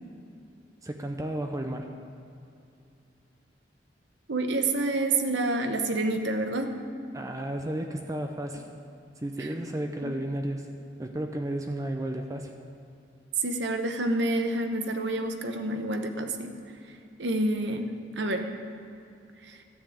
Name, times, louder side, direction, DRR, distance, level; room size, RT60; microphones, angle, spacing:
voice 1, 0.8-2.0 7.1-8.7 9.2-10.7 11.0-12.5, right 1 dB, 20° right, 4 dB, 0.6 m, -33 dB
voice 2, 4.3-6.8 9.4-9.5 10.0-10.1 13.4-16.5 17.2-18.5 19.4-19.5, right 2 dB, 80° right, 5 dB, 1.0 m, -28 dB
12.5 x 7.0 x 8.7 m, 2.7 s
head